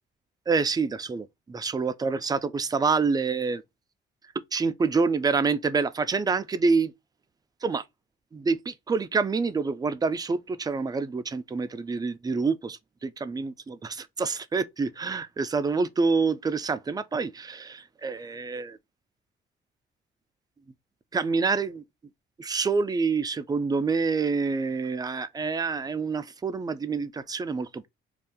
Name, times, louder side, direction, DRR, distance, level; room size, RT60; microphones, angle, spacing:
voice 1, 0.5-3.6 4.5-6.9 7.6-7.8 8.3-18.8 21.1-21.8 22.4-27.9, right 4 dB, 20° right, 0.4 m, -27 dB
2.6 x 2.3 x 3.6 m
cardioid pair, 90°, 20 cm